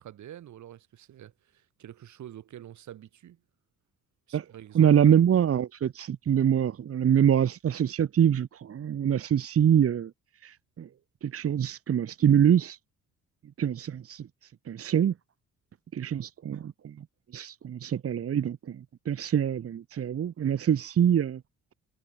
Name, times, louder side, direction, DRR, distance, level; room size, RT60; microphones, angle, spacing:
voice 1, 0.0-3.4 4.3-4.9, right 11 dB, 70° right, 3.7 m, -47 dB
voice 2, 4.7-10.1 10.4-10.9 11.2-12.8 13.6-15.1 15.9-17.0 17.3-21.4, right 9 dB, 50° right, 1.3 m, -25 dB
cardioid pair, 90°, 30 cm